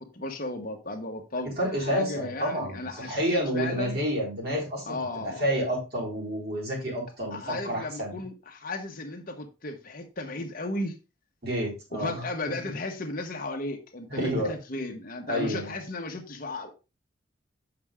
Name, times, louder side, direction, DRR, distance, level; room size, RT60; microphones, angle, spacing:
voice 1, 0.0-1.5 1.8-4.0 4.8-5.4 7.3-10.9 11.9-16.7, left 2 dB, 45° left, 1.3 m, -35 dB
voice 2, 1.6-8.2 11.4-12.2 14.1-14.5 15.3-15.7, equal, 55° right, 4.0 m, -29 dB
7.1 x 6.0 x 3.6 m
head